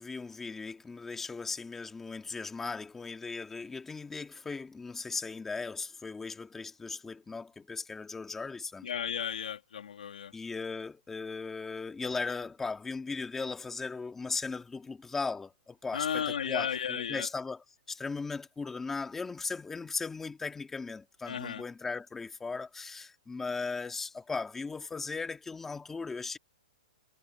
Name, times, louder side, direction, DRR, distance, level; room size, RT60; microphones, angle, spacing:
voice 1, 0.0-8.9 10.3-26.4, left 4 dB, 5° left, 2.1 m, -37 dB
voice 2, 8.8-10.3 15.9-17.3 21.3-21.6, left 8 dB, 90° left, 3.5 m, -34 dB
hypercardioid pair, 165°, 4 cm